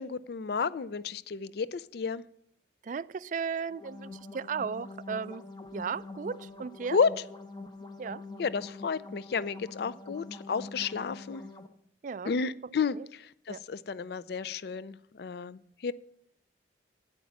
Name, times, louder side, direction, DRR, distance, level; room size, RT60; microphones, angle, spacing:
voice 1, 0.0-2.2 6.9-7.1 8.4-11.4 12.2-15.9, left 5 dB, 60° left, 17 dB, 0.4 m, -32 dB
voice 2, 2.8-5.4 5.7-7.0 8.0-8.2 12.0-12.3 12.9-13.1 13.5-13.6, right 6 dB, 45° right, 18 dB, 0.3 m, -35 dB
sound 1, 3.7-11.7, left 3 dB, 25° left, 0.9 m, -45 dB
10.5 x 8.2 x 5.8 m, 0.67 s
head